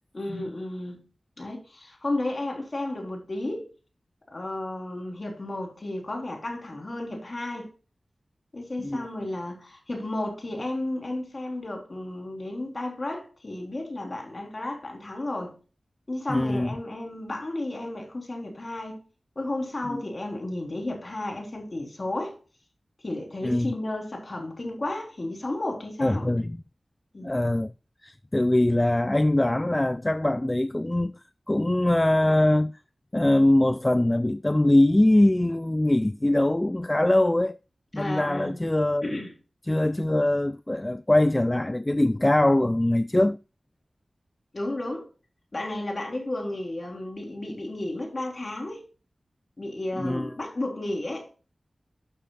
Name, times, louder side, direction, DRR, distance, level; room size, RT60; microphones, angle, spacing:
voice 1, 0.1-1.0 1.4-3.7 4.3-7.7 8.5-15.6 16.1-19.0 19.4-22.4 23.0-26.3 27.1-27.3 38.0-38.6 39.0-39.3 44.5-45.1 45.5-48.8 49.6-51.3, left 1 dB, 50° left, 3.8 m, -33 dB
voice 2, 16.3-16.7 19.9-20.0 23.4-23.7 26.0-26.6 27.2-27.7 28.0-31.1 31.5-32.7 33.1-37.6 37.9-39.1 39.7-43.4 50.0-50.3, left 1 dB, 25° left, 0.4 m, -22 dB
12.5 x 6.8 x 2.4 m
cardioid pair, 45°, 0 cm